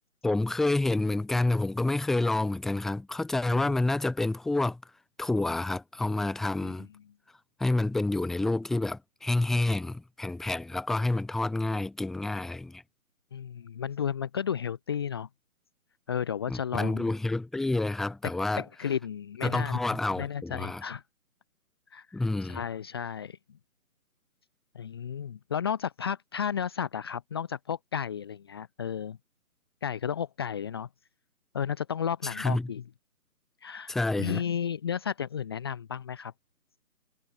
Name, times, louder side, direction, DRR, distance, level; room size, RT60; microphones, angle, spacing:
voice 1, 0.2-4.8 5.2-6.9 7.6-12.8 16.5-18.6 19.4-20.8 22.1-22.6 32.2-32.7 33.9-34.4, left 2 dB, ahead, 1.6 m, -28 dB
voice 2, 13.3-15.3 16.1-17.1 18.2-19.8 20.2-21.0 21.9-23.4 24.7-29.2 29.8-30.9 31.5-32.8 33.6-36.3, left 8 dB, 15° left, 1.3 m, -33 dB
figure-of-eight pair, 165°, 44 cm